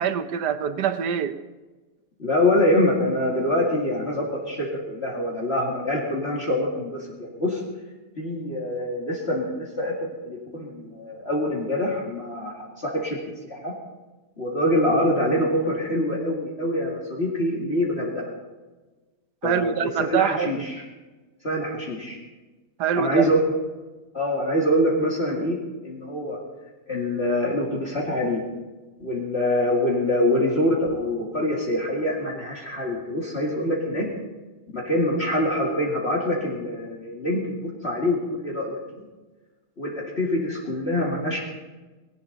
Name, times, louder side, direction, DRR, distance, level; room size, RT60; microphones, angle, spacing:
voice 1, 0.0-1.4 19.4-20.7 22.8-23.3, right 8 dB, 80° right, 10 dB, 1.5 m, -24 dB
voice 2, 2.2-7.6 8.2-9.9 10.2-13.2 13.4-13.7 14.4-18.3 19.4-19.7 20.0-20.8 21.4-22.2 23.0-23.4 24.1-26.4 26.9-28.4 29.0-34.1 34.7-39.0 39.8-41.4, left 1 dB, 40° left, -3 dB, 2.6 m, -25 dB
18.5 x 18.0 x 4.1 m, 1.2 s
omnidirectional pair, 1.7 m